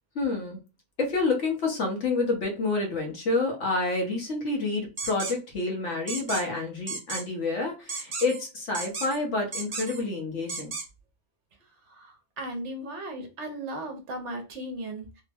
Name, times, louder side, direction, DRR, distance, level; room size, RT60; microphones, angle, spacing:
voice 1, 0.1-0.6 1.0-10.7, left 3 dB, 75° left, 2 dB, 1.3 m, -28 dB
sound 1, 5.0-5.3 6.1-6.4 6.9-7.2 7.9-8.4 8.7-9.2 9.5-10.0 10.5-10.9, right 4 dB, 40° right, 0.5 m, -34 dB
voice 2, 11.9-15.1, right 1 dB, 75° right, 4 dB, 1.1 m, -36 dB
3.4 x 2.1 x 3.4 m, 0.28 s
omnidirectional pair, 1.2 m